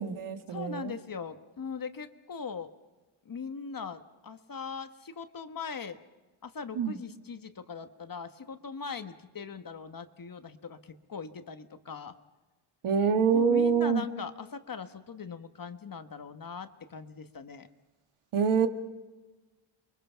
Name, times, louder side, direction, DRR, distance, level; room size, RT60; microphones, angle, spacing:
voice 1, 0.0-0.9 6.8-7.0 12.8-14.0 18.3-18.7, right 6 dB, 85° right, 7 dB, 1.9 m, -25 dB
voice 2, 0.5-2.7 3.2-6.0 6.4-12.1 13.3-17.7, left 5 dB, 45° left, 9 dB, 1.4 m, -40 dB
29.0 x 23.0 x 5.7 m, 1.2 s
wide cardioid pair, 125°, 48 cm